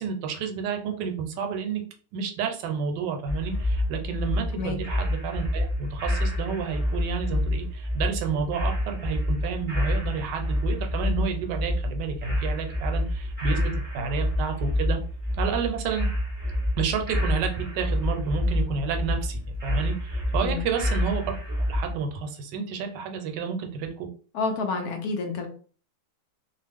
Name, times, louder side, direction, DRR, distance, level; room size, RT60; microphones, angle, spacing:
voice 1, 0.0-1.8 2.1-15.0 15.4-16.1 16.8-21.4 21.7-24.1, right 6 dB, 80° right, 4 dB, 1.2 m, -30 dB
sound 1, 3.3-21.9, left 1 dB, 25° right, 0.3 m, -28 dB
voice 2, 24.3-25.5, left 4 dB, 70° left, 4 dB, 0.9 m, -29 dB
2.9 x 2.0 x 3.4 m, 0.41 s
omnidirectional pair, 1.9 m